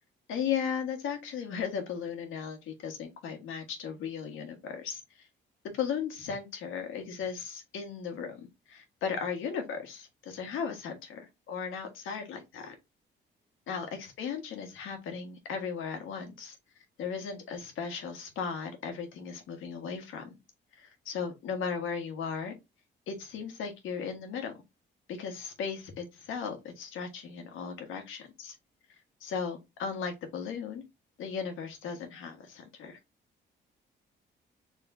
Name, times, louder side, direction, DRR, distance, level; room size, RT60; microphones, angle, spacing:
voice 1, 0.3-5.3 5.7-12.7 13.7-16.6 17.0-20.3 20.7-22.5 23.1-24.5 25.1-28.5 29.2-30.8 31.2-33.0, left 6 dB, 85° left, 1.4 m, -36 dB
5.1 x 3.1 x 2.6 m
cardioid pair, 90°, 20 cm